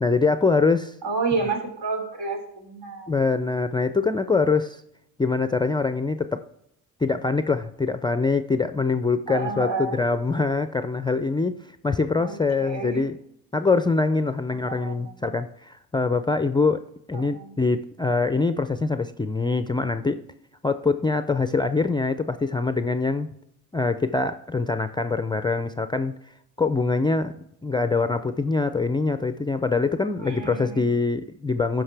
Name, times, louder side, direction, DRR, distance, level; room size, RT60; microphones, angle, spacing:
voice 1, 0.0-0.9 3.1-4.8 5.2-6.4 7.0-11.6 11.8-13.2 13.5-16.8 17.1-20.2 20.6-23.3 23.7-26.1 26.6-27.3 27.6-31.8, left 3 dB, 10° left, 10 dB, 0.4 m, -24 dB
voice 2, 1.0-3.1 9.3-10.0 12.2-12.3 12.6-13.0 14.5-15.0 17.3-17.5 30.2-30.8, right 4 dB, 70° right, 2 dB, 3.2 m, -29 dB
13.0 x 5.3 x 3.3 m, 0.76 s
supercardioid pair, 90°, 40 cm